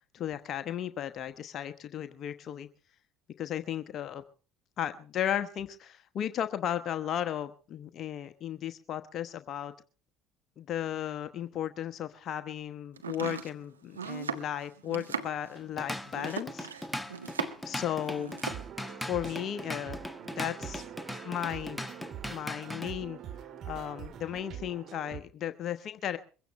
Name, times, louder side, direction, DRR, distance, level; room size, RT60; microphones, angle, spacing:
voice 1, 0.1-2.7 3.4-4.2 4.8-9.7 10.6-16.7 17.6-18.4 19.1-20.0 20.2-20.8 21.2-21.9 22.3-23.2 23.7-26.2, left 10 dB, 50° left, 10 dB, 1.1 m, -35 dB
Domestic sounds home sounds, 13.0-17.8 18.0-18.7, right 6 dB, 90° right, 1.6 m, -38 dB
Drum kit / Drum, 15.5-22.9, left 1 dB, 5° left, 1.5 m, -39 dB
sound 1, 18.4-25.2, right 9 dB, 50° right, 2.3 m, -44 dB
23.0 x 16.5 x 3.3 m, 0.39 s
hypercardioid pair, 65°, 0 cm